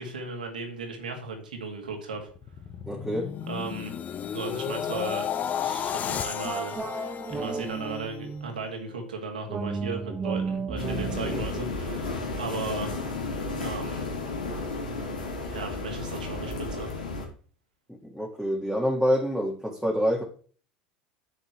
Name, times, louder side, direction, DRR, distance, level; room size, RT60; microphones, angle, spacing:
voice 1, 0.0-2.3 3.5-3.9 4.3-5.3 5.6-12.9 13.6-14.1 15.4-16.9, right 4 dB, 85° right, 2.4 m, -36 dB
sound 1, 2.2-8.5 8.9-9.2, left 8 dB, 35° left, 0.8 m, -33 dB
voice 2, 2.9-3.3 11.2-11.4 17.9-20.2, equal, ahead, 1.9 m, -27 dB
sound 2, 6.4-8.7 9.5-12.8, right 4 dB, 20° right, 0.9 m, -34 dB
sound 3, 10.8-17.3, left 3 dB, 85° left, 2.3 m, -33 dB
10.0 x 7.4 x 3.2 m
hypercardioid pair, 80°, 4 cm